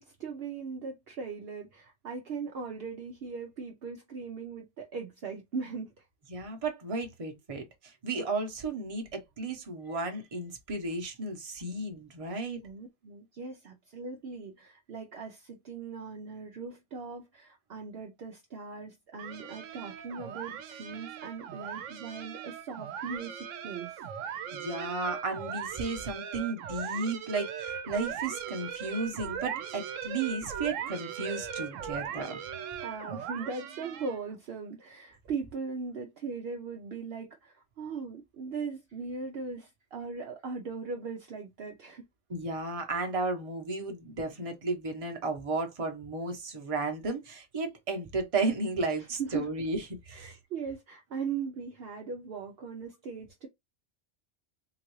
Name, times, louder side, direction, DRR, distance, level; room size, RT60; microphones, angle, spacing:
voice 1, 0.0-6.0 12.6-24.0 32.8-42.0 49.2-49.5 50.1-53.5, right 5 dB, 60° right, 0.8 m, -39 dB
voice 2, 6.3-12.6 24.5-32.4 42.3-50.3, right 3 dB, 30° right, 0.9 m, -34 dB
sound 1, 19.2-34.3, right 8 dB, 85° right, 1.0 m, -39 dB
3.9 x 2.4 x 3.0 m
omnidirectional pair, 1.3 m